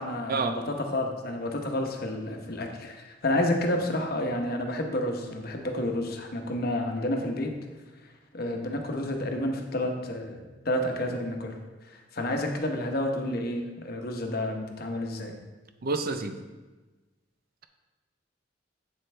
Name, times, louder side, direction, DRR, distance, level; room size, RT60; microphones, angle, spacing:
voice 1, 0.0-7.5 8.3-11.6 11.9-15.3, left 1 dB, 55° left, 3 dB, 1.0 m, -30 dB
voice 2, 15.8-16.4, right 3 dB, 55° right, 8 dB, 0.6 m, -28 dB
8.0 x 7.8 x 3.3 m, 1.2 s
head